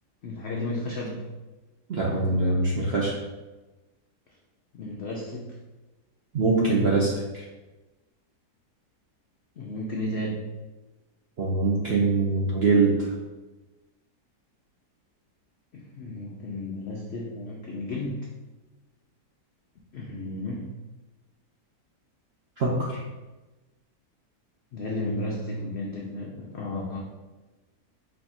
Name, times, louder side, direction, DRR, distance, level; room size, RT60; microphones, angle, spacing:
voice 1, 0.2-1.2 4.7-5.6 9.6-10.5 15.7-18.3 19.9-20.7 22.8-22.9 24.7-27.0, left 1 dB, 85° left, -1 dB, 0.5 m, -33 dB
voice 2, 1.9-3.1 6.3-7.4 11.4-13.1 22.6-23.0, right 3 dB, 65° right, -4 dB, 0.6 m, -23 dB
4.3 x 2.6 x 4.2 m, 1.1 s
omnidirectional pair, 1.8 m